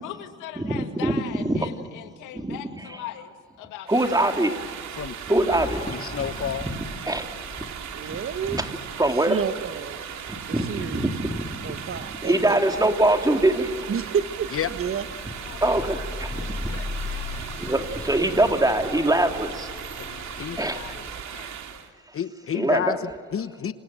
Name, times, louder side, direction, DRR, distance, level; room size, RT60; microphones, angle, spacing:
voice 1, 0.0-3.9 4.2-4.4 15.4-15.7 16.1-17.2 20.1-21.9, left 11 dB, 85° left, 7 dB, 2.3 m, -41 dB
voice 2, 0.6-1.7 2.3-2.6 3.9-4.6 5.3-5.8 6.4-6.7 7.1-7.7 8.5-8.7 9.0-9.4 10.3-11.7 12.2-13.7 15.6-16.7 17.6-19.7 20.6-20.8 22.5-23.0, right 1 dB, 10° right, 5 dB, 2.9 m, -23 dB
sound 1, 3.9-21.9, right 8 dB, 65° right, 2.5 m, -38 dB
sound 2, 5.5-21.2, left 3 dB, 20° left, 2.7 m, -39 dB
voice 3, 5.9-6.7 14.5-14.7 20.0-20.1 20.3-20.6 22.1-23.7, left 8 dB, 45° left, 12 dB, 1.2 m, -30 dB
voice 4, 7.9-8.6 9.3-10.0 10.4-11.1 11.6-12.6 13.9-15.0, right 7 dB, 45° right, 11 dB, 1.4 m, -30 dB
29.5 x 26.0 x 7.8 m, 2.1 s
supercardioid pair, 70°, 30 cm